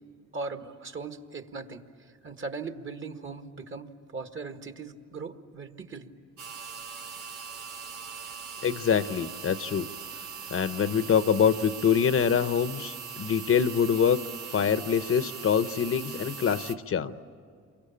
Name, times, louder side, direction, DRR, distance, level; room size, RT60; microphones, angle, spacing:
voice 1, 0.3-1.8 2.2-6.1, right 4 dB, 40° right, 7 dB, 1.7 m, -39 dB
sound 1, 6.4-16.8, right 6 dB, 80° right, 1.8 m, -41 dB
voice 2, 8.6-9.9 10.5-14.2 14.5-17.1, left 7 dB, 45° left, 12 dB, 0.9 m, -25 dB
28.5 x 24.0 x 8.7 m, 2.3 s
cardioid pair, 90°, 30 cm